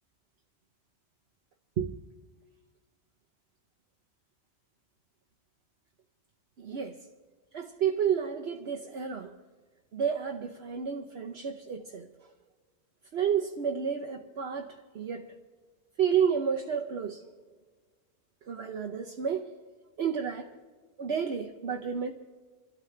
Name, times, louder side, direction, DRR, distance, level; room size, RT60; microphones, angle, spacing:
voice 1, 6.6-7.0 7.5-9.3 9.9-12.1 13.1-15.3 16.0-17.2 18.5-19.5 20.0-20.5 21.0-22.1, right 7 dB, 65° right, 1 dB, 1.1 m, -31 dB
26.5 x 13.0 x 3.3 m, 1.4 s
omnidirectional pair, 1.1 m